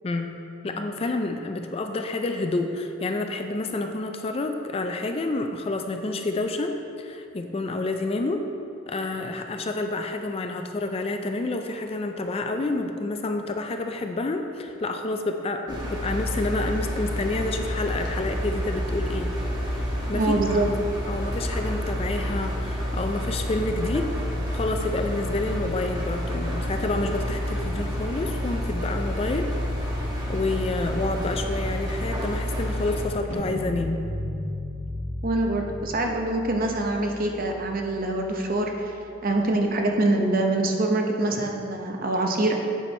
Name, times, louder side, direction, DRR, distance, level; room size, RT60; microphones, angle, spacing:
voice 1, 0.0-8.4 8.9-19.3 19.7-20.4 21.1-24.1 24.5-29.5 30.3-34.0, left 2 dB, 30° left, 5 dB, 0.3 m, -29 dB
Engine, 15.7-33.1, equal, 20° right, 1.2 m, -29 dB
voice 2, 20.1-20.7 35.2-38.9 39.2-42.6, right 2 dB, 45° right, 2 dB, 0.7 m, -24 dB
sound 1, 33.3-39.3, left 1 dB, 90° right, 1.9 m, -36 dB
8.5 x 5.3 x 4.2 m, 2.6 s
head